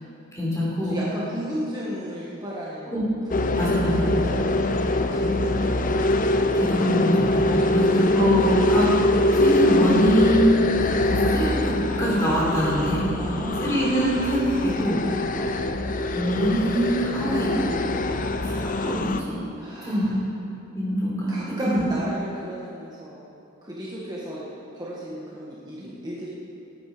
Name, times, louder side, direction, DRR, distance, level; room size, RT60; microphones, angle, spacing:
voice 1, 0.3-0.9 2.9-3.0 3.6-4.0 6.5-10.4 10.8-11.7 12.0-13.1 13.6-15.0 16.1-17.7 18.4-19.4 19.8-20.1 20.7-21.3 21.6-21.9, equal, 15° left, -6 dB, 4.1 m, -24 dB
voice 2, 0.8-6.0 7.5-7.9 13.2-13.8 15.3-15.5 19.6-20.2 21.3-23.3 23.6-24.5 24.7-26.3, equal, 20° right, -6 dB, 1.6 m, -34 dB
sound 1, 3.3-19.2, left 1 dB, 40° left, 0.6 m, -23 dB
19.5 x 9.4 x 5.1 m, 2.7 s
head